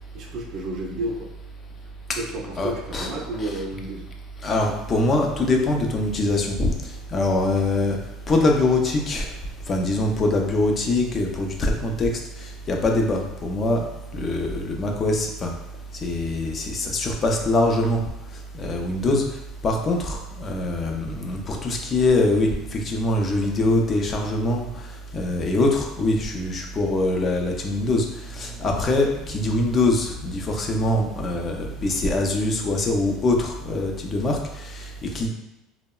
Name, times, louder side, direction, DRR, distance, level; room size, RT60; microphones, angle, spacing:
voice 1, 0.1-1.3 2.1-4.1, right 1 dB, 55° right, 1 dB, 0.5 m, -31 dB
voice 2, 2.6-3.1 3.4-3.5 4.4-6.7 7.1-8.0 8.3-9.3 9.7-13.9 14.1-15.5 16.0-18.0 18.5-19.2 19.6-24.7 25.1-35.3, left 2 dB, 35° left, 1 dB, 0.4 m, -23 dB
2.8 x 2.0 x 2.2 m, 0.93 s
supercardioid pair, 95°, 0 cm